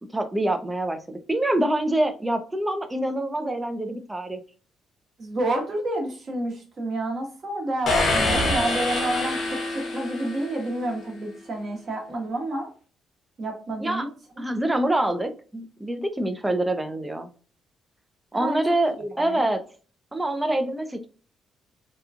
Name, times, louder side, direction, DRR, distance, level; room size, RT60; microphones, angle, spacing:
voice 1, 0.1-4.4 13.8-14.1 14.4-17.3 18.3-19.6 20.1-21.1, right 1 dB, 10° right, 7 dB, 0.5 m, -25 dB
voice 2, 5.2-12.7 13.4-14.1 18.3-18.6 19.0-19.4, right 1 dB, 45° right, 1 dB, 1.1 m, -29 dB
sound 1, 7.9-10.7, left 2 dB, 60° left, 1.0 m, -25 dB
2.9 x 2.3 x 2.4 m, 0.38 s
cardioid pair, 90°, 0 cm